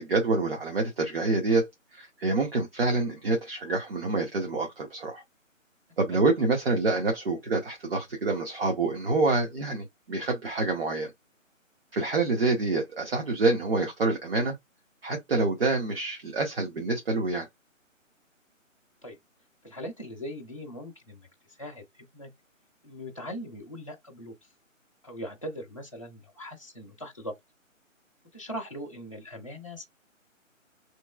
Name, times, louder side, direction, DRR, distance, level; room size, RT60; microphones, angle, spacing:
voice 1, 0.0-5.2 6.0-11.1 11.9-14.5 15.0-17.5, right 3 dB, 45° right, 0.8 m, -27 dB
voice 2, 19.6-22.3 22.8-24.3 25.0-27.3 28.3-29.9, equal, 25° left, 0.5 m, -40 dB
3.6 x 3.0 x 2.2 m
hypercardioid pair, 165°, 40 cm